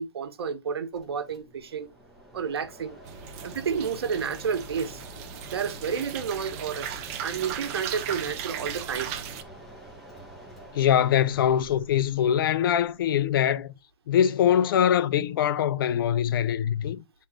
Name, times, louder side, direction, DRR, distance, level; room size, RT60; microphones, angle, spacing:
voice 1, 0.0-1.9 2.3-3.0 3.4-5.0 5.5-9.1, right 6 dB, 80° right, 1.4 m, -31 dB
Mechanisms, 0.9-13.3, right 1 dB, ahead, 2.0 m, -47 dB
sound 1, 3.0-9.4, right 8 dB, 40° right, 0.9 m, -37 dB
voice 2, 10.7-13.7 14.1-17.0, left 9 dB, 60° left, 0.7 m, -23 dB
11.5 x 4.2 x 2.5 m
hypercardioid pair, 145°, 13 cm